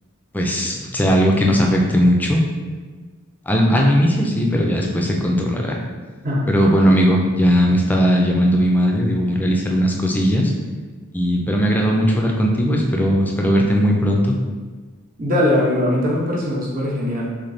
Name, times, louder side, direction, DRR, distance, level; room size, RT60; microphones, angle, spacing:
voice 1, 0.3-2.4 3.5-5.8 6.5-10.5 11.1-14.4, equal, 10° left, 0 dB, 0.4 m, -18 dB
voice 2, 15.2-17.3, left 1 dB, 40° right, -3 dB, 0.9 m, -20 dB
3.5 x 3.3 x 4.0 m, 1.4 s
head